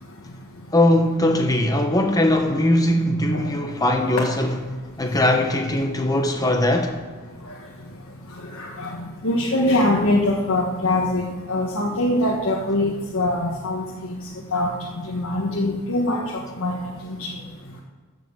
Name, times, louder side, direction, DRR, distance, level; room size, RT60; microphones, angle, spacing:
voice 1, 0.7-4.5 5.0-7.0, left 1 dB, 15° left, 0.8 m, -20 dB
voice 2, 8.6-14.2 14.5-16.2 16.6-16.7 17.0-17.3, left 1 dB, 70° left, 1.5 m, -23 dB
14.5 x 6.2 x 6.7 m
head